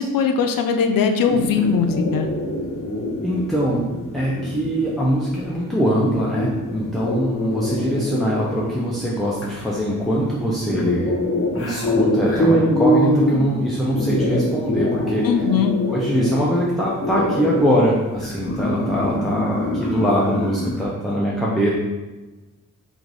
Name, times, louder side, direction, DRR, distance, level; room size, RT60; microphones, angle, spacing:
voice 1, 0.0-2.3 15.2-15.7, left 6 dB, 85° left, 6 dB, 0.5 m, -20 dB
sound 1, 1.3-20.8, left 1 dB, 40° left, 0.9 m, -25 dB
voice 2, 3.2-3.8 4.1-11.1 11.6-15.3 15.9-21.7, equal, ahead, -6 dB, 0.5 m, -22 dB
3.9 x 2.5 x 4.7 m, 1.2 s
wide cardioid pair, 155°, 33 cm